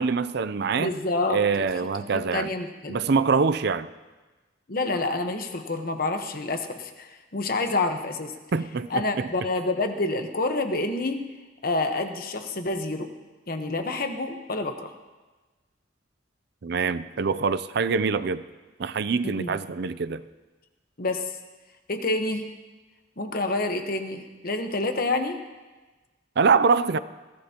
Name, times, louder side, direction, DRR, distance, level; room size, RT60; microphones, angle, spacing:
voice 1, 0.0-0.9 1.3-2.5 2.9-3.9 8.5-9.3 16.6-18.4 18.8-20.2 26.4-27.0, right 5 dB, 60° right, 14 dB, 0.5 m, -24 dB
voice 2, 0.8-1.7 2.0-3.0 4.7-8.3 8.9-11.2 11.6-13.1 13.5-14.9 19.2-19.6 21.0-21.3 21.9-22.5 23.2-25.4, left 2 dB, 50° left, 6 dB, 1.2 m, -28 dB
21.5 x 16.0 x 2.9 m, 1.2 s
head